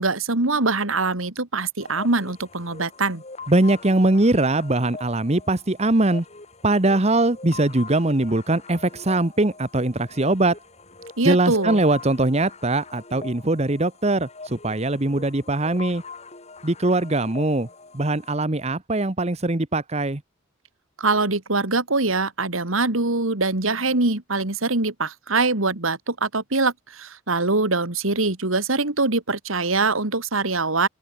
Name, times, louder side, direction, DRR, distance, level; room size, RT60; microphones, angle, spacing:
voice 1, 0.0-3.2 11.2-11.8 21.0-30.9, right 3 dB, 90° right, 2.7 m, -23 dB
sound 1, 1.8-18.4, left 4 dB, 35° left, 2.8 m, -43 dB
voice 2, 3.5-6.2 6.6-10.6 11.2-16.0 16.6-17.7 17.9-20.2, right 2 dB, 30° right, 1.2 m, -21 dB
open air
head